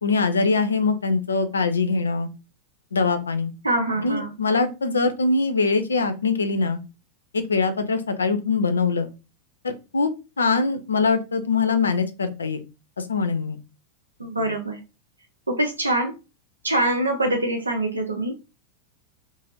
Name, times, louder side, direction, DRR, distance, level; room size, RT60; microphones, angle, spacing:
voice 1, 0.0-2.3 2.9-3.5 4.0-6.8 7.3-9.1 9.6-10.1 10.4-12.6 13.0-13.6, left 4 dB, 75° left, 0.4 m, -23 dB
voice 2, 3.6-4.3 14.2-14.8 15.5-16.1 16.6-18.4, right 1 dB, 80° right, 0.4 m, -24 dB
2.6 x 2.4 x 3.0 m
figure-of-eight pair, 90°, 0 cm